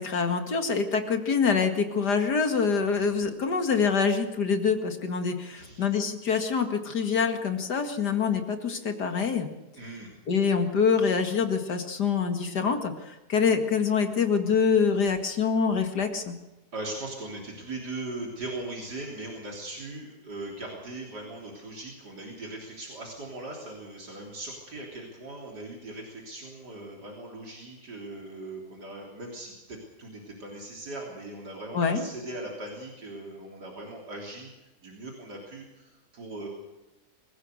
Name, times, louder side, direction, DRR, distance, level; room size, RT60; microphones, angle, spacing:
voice 1, 0.0-9.5 10.3-16.3 31.7-32.0, left 5 dB, 75° left, 6 dB, 2.6 m, -25 dB
voice 2, 5.6-5.9 9.8-10.1 16.7-36.5, right 2 dB, 80° right, -1 dB, 4.1 m, -39 dB
25.0 x 15.5 x 6.6 m, 1.1 s
omnidirectional pair, 1.8 m